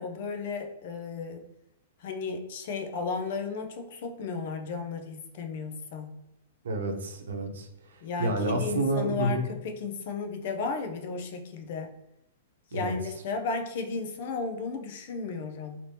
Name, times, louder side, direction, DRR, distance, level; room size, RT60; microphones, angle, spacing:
voice 1, 0.0-1.4 2.0-6.1 8.0-11.9 12.7-15.8, left 4 dB, 50° left, 5 dB, 0.6 m, -34 dB
voice 2, 6.6-7.7 8.2-9.5 12.7-12.9, right 1 dB, 90° right, 3 dB, 0.8 m, -29 dB
2.9 x 2.7 x 3.3 m, 0.87 s
hypercardioid pair, 160°, 0 cm